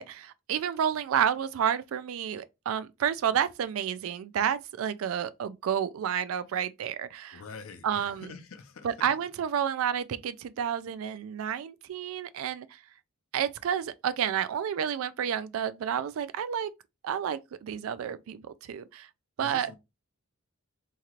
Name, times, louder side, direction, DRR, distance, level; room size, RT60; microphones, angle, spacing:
voice 1, 0.0-7.4 7.8-8.3 8.8-12.8 13.3-16.7 17.0-19.1 19.4-19.7, right 8 dB, 70° right, 0.3 m, -30 dB
voice 2, 7.3-9.1 19.4-19.8, left 4 dB, 75° left, 0.6 m, -45 dB
2.8 x 2.4 x 2.9 m
head